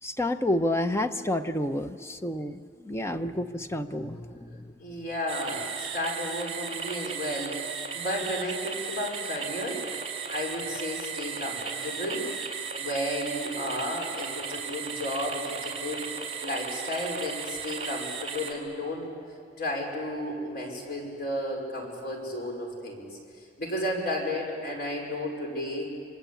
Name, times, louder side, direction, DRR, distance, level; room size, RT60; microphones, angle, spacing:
voice 1, 0.0-5.0, left 1 dB, 15° left, 8 dB, 0.9 m, -30 dB
voice 2, 4.8-9.8 10.3-12.3 12.8-16.0 16.4-19.1 19.6-23.2 23.6-25.9, left 1 dB, 60° left, 0 dB, 5.3 m, -33 dB
sound 1, 5.3-18.5, right 6 dB, 40° right, 3.7 m, -36 dB
27.5 x 26.0 x 8.5 m, 2.3 s
head